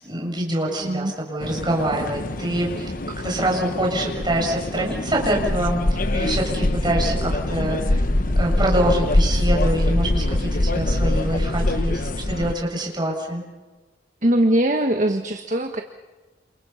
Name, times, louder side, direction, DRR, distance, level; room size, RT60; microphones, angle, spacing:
voice 1, 0.0-2.9 3.2-8.0 8.4-13.4, right 1 dB, 25° right, -1 dB, 7.3 m, -25 dB
voice 2, 0.8-1.1 14.2-15.8, right 1 dB, 40° right, 5 dB, 1.4 m, -21 dB
sound 1, 1.4-12.5, left 1 dB, 45° left, 1.0 m, -23 dB
28.5 x 28.5 x 5.8 m, 1.3 s
head